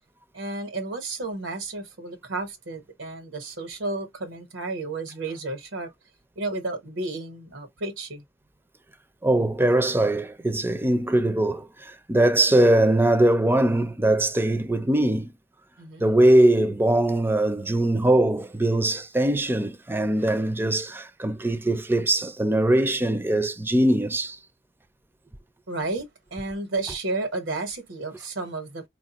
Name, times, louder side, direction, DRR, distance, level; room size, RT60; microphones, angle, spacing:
voice 1, 0.3-5.9 6.4-8.2 15.8-16.1 25.7-26.1 26.3-28.8, right 2 dB, 85° right, 1.2 m, -32 dB
voice 2, 9.2-15.3 16.0-24.4, right 1 dB, 10° right, 0.5 m, -21 dB
4.5 x 2.5 x 2.9 m
head